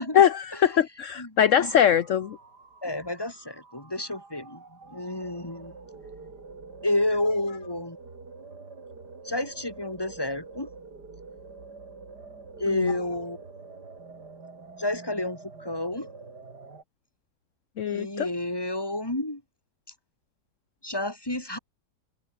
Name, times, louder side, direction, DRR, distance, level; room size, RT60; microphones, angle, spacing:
voice 1, 0.1-2.4 12.7-12.9 17.8-18.3, left 9 dB, 50° left, 1.1 m, -22 dB
sound 1, 1.4-16.8, right 4 dB, 65° right, 4.1 m, -46 dB
voice 2, 2.8-4.6 4.9-5.7 6.8-8.0 9.2-10.7 12.6-13.4 14.8-16.1 17.9-19.4 20.8-21.6, left 1 dB, 10° left, 3.4 m, -30 dB
omnidirectional pair, 1.9 m